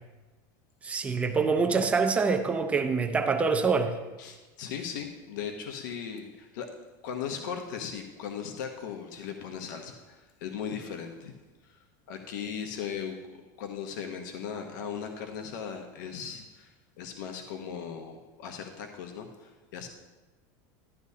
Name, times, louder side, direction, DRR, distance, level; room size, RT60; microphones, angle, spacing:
voice 1, 0.8-3.9, right 4 dB, 10° right, 6 dB, 0.5 m, -25 dB
voice 2, 4.2-6.7 7.0-11.3 11.6-11.7 12.1-16.7 17.0-19.9, left 7 dB, 75° left, 5 dB, 0.9 m, -38 dB
12.0 x 9.7 x 2.8 m, 1.2 s
supercardioid pair, 165°, 10 cm